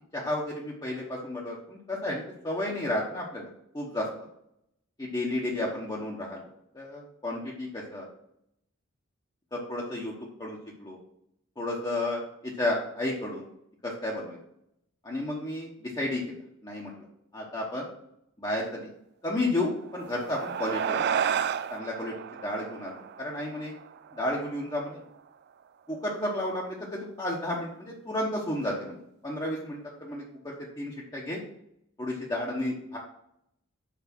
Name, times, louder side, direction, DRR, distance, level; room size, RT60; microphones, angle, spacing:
voice 1, 0.1-3.5 3.7-4.1 5.0-6.4 6.7-8.1 9.5-10.1 10.4-11.0 11.6-13.4 13.8-14.4 15.0-16.4 16.6-16.9 17.3-17.9 18.4-18.9 19.2-21.0 21.7-22.1 22.4-23.7 24.1-25.0 25.9-29.0 29.2-31.4 32.0-33.0, left 1 dB, 20° left, -4 dB, 1.1 m, -32 dB
sound 1, 19.8-24.6, right 8 dB, 55° right, 0.3 m, -32 dB
6.0 x 4.8 x 6.0 m, 0.76 s
head